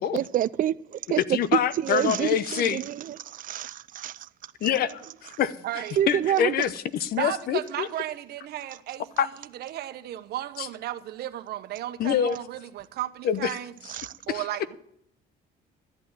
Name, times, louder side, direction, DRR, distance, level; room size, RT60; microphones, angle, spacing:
voice 1, 0.1-1.2 1.5-4.5 6.0-6.6 13.9-14.1, right 11 dB, 55° right, 0.5 m, -28 dB
voice 2, 1.2-2.8 4.6-5.6 6.1-7.9 9.2-9.3 10.6-10.7 12.0-12.4 13.2-13.6 14.3-14.4, left 9 dB, 65° left, 0.9 m, -25 dB
voice 3, 5.6-6.0 7.1-9.3 9.6-13.7 14.3-14.8, right 13 dB, 70° right, 1.1 m, -34 dB
13.0 x 8.6 x 7.7 m
cardioid pair, 110°, 17 cm